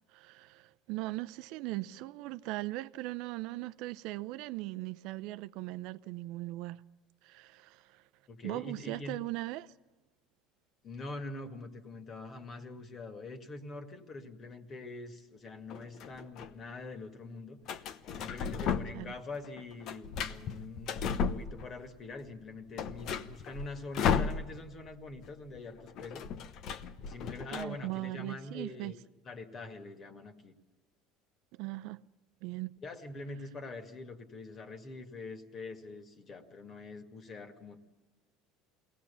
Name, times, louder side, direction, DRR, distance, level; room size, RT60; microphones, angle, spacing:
voice 1, 0.1-6.8 7.2-8.0 8.4-9.7 18.9-19.1 27.5-28.9 31.5-32.0 32.4-32.7, right 18 dB, 70° right, 0.6 m, -39 dB
voice 2, 8.3-9.1 10.8-17.6 18.1-26.2 27.0-29.0 29.3-30.5 32.8-37.8, left 3 dB, 35° left, 2.2 m, -44 dB
sound 1, 15.7-16.5 17.7-19.1 19.4-21.9 22.3-22.4 22.6-24.9 25.1-25.3 25.5-27.6, left 6 dB, 55° left, 0.9 m, -34 dB
22.0 x 17.5 x 7.0 m
supercardioid pair, 105°, 0 cm